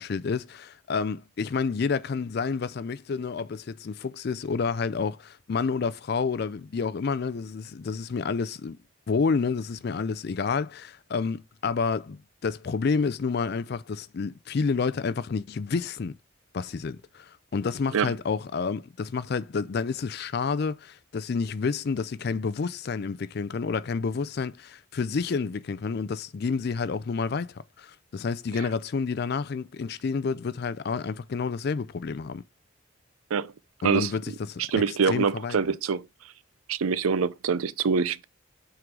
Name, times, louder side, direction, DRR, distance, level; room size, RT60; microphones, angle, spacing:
voice 1, 0.0-8.8 9.1-16.2 16.5-32.4 33.8-35.7, left 5 dB, 50° left, 0.4 m, -29 dB
voice 2, 34.6-36.0 36.7-38.2, right 5 dB, 85° right, 0.5 m, -25 dB
7.8 x 3.8 x 4.6 m
head